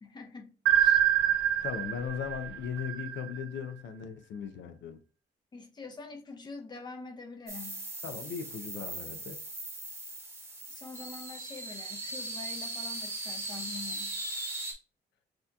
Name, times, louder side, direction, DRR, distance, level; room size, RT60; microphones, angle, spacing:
voice 1, 0.0-1.0 5.5-7.8 10.7-14.2, left 4 dB, 25° left, 0.6 m, -45 dB
sound 1, 0.7-3.6, right 11 dB, 80° right, 0.5 m, -26 dB
voice 2, 1.1-5.0 8.0-9.4, left 7 dB, 90° left, 0.5 m, -38 dB
sound 2, 7.5-14.7, right 2 dB, 15° right, 1.0 m, -39 dB
5.9 x 2.8 x 2.3 m
wide cardioid pair, 180°, 19 cm